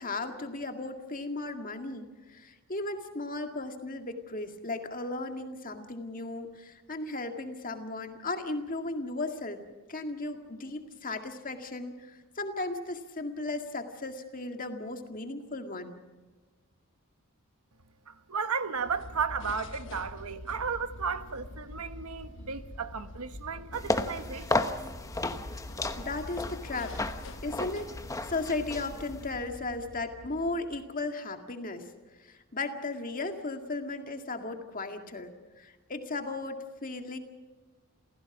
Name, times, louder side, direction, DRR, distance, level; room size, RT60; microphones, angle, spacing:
voice 1, 0.0-9.6 9.9-16.0 26.0-27.0 27.4-27.9 28.2-31.9 32.2-35.3 35.6-37.2, left 2 dB, 40° left, 2.0 m, -36 dB
voice 2, 18.1-24.7, right 5 dB, 80° right, 1.3 m, -34 dB
sound 1, 18.8-30.9, left 2 dB, 55° left, 1.1 m, -45 dB
sound 2, 23.7-29.4, left 2 dB, 15° left, 1.0 m, -34 dB
28.5 x 16.0 x 6.1 m
head